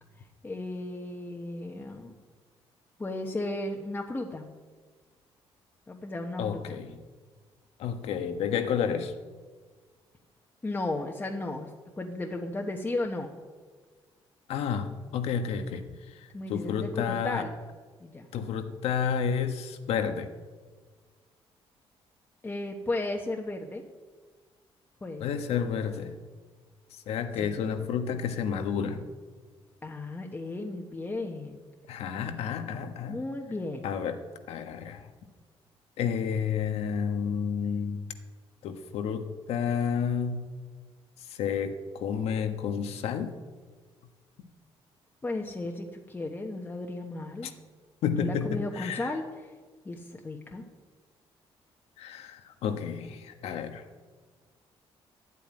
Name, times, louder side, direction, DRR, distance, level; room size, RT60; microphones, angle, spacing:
voice 1, 0.4-2.1 3.0-4.5 5.9-6.8 10.6-11.7 12.0-13.3 16.3-17.5 18.0-18.3 22.4-23.8 25.0-25.5 27.4-27.8 29.8-31.6 33.1-33.9 45.2-47.5 48.1-49.5 49.8-50.6, left 2 dB, 20° left, 1 dB, 1.2 m, -35 dB
voice 2, 6.4-7.0 7.8-9.1 14.5-15.9 16.5-17.5 18.3-20.3 25.2-26.1 27.1-29.0 31.9-33.2 33.8-34.2 34.5-35.0 36.0-38.0 38.6-40.4 41.4-41.7 42.0-43.3 48.0-49.1 52.0-53.8, left 7 dB, 85° left, 8 dB, 1.3 m, -30 dB
12.5 x 8.2 x 9.7 m, 1.5 s
cardioid pair, 125°, 10 cm